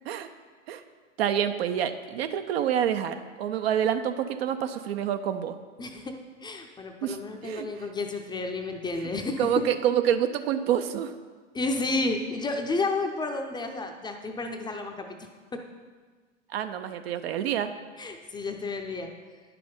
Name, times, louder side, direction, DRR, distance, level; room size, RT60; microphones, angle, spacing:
voice 1, 1.2-5.6 7.0-7.2 7.4-7.7 8.9-9.1 9.4-11.1 16.5-17.7, right 9 dB, 55° right, 9 dB, 0.7 m, -27 dB
voice 2, 5.8-6.1 6.4-9.5 11.5-15.1 15.5-15.6 18.0-19.1, left 3 dB, 10° left, 4 dB, 0.6 m, -31 dB
10.0 x 5.9 x 5.4 m, 1.5 s
figure-of-eight pair, 100°, 37 cm